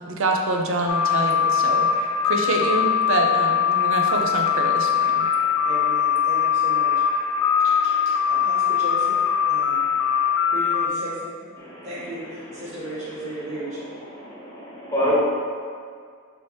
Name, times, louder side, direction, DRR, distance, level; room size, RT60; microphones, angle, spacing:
voice 1, 0.1-1.9 2.2-5.3, right 2 dB, 60° right, 2 dB, 0.5 m, -25 dB
sound 1, 0.9-10.9, left 7 dB, 90° left, 0.3 m, -21 dB
voice 2, 5.6-7.0 7.8-7.9 8.3-9.2 9.5-9.9 10.5-11.6 11.8-13.9, right 1 dB, 35° right, -10 dB, 1.4 m, -35 dB
voice 3, 14.0-15.2, equal, 15° left, -8 dB, 1.1 m, -27 dB
4.6 x 2.8 x 3.1 m, 2.1 s
head